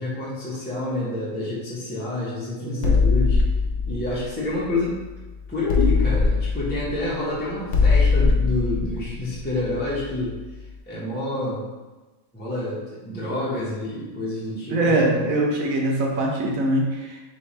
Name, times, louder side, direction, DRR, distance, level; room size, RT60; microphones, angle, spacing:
voice 1, 0.0-3.4 3.9-5.0 5.5-10.4 10.9-11.7 12.3-15.3, left 2 dB, 10° left, -8 dB, 0.8 m, -28 dB
voice 2, 2.6-3.0 14.7-17.2, right 1 dB, 90° right, 0 dB, 1.2 m, -23 dB
sound 1, 2.8-5.2 5.7-10.3, left 4 dB, 65° left, 0.9 m, -21 dB
3.4 x 3.3 x 4.2 m, 1.2 s
omnidirectional pair, 1.4 m